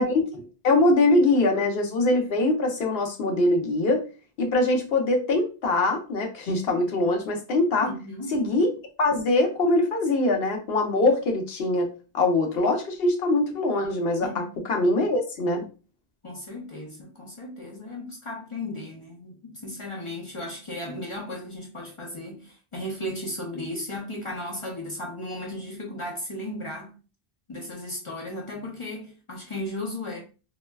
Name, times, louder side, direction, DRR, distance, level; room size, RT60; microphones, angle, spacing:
voice 1, 0.0-4.0 4.4-7.9 8.3-8.7 9.0-14.4 14.7-15.7, left 2 dB, 70° left, 0.9 m, -23 dB
voice 2, 7.8-8.4 14.2-14.5 16.2-26.9 27.5-30.2, left 1 dB, 35° left, 0.6 m, -35 dB
3.9 x 2.1 x 2.2 m
omnidirectional pair, 1.1 m